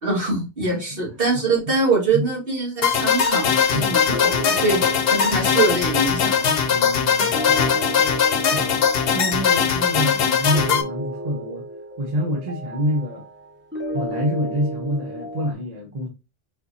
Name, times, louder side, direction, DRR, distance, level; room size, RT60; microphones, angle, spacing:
voice 1, 0.0-4.8 5.1-6.5, right 3 dB, 65° right, 2.1 m, -23 dB
sound 1, 2.8-10.8, left 7 dB, 70° left, 0.9 m, -20 dB
voice 2, 3.7-4.0 4.8-4.9 6.7-8.1 8.5-8.9 9.1-11.6 12.0-13.2 13.9-16.1, equal, 40° right, 1.0 m, -27 dB
sound 2, 4.1-15.5, equal, 10° right, 1.1 m, -33 dB
4.4 x 4.3 x 2.7 m
omnidirectional pair, 1.0 m